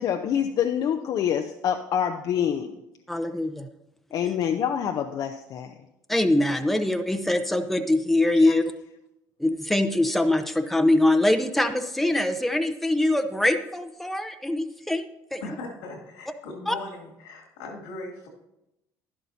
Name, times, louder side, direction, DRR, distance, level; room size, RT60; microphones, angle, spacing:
voice 1, 0.0-2.8 4.1-5.7 8.4-8.5, left 9 dB, 55° left, 5 dB, 0.6 m, -26 dB
voice 2, 3.1-3.7 6.1-8.6 9.4-15.4 16.7-16.8, left 1 dB, ahead, 7 dB, 0.7 m, -23 dB
voice 3, 15.4-18.3, left 2 dB, 90° left, -1 dB, 2.3 m, -39 dB
11.0 x 11.0 x 2.7 m, 0.89 s
supercardioid pair, 80°, 8 cm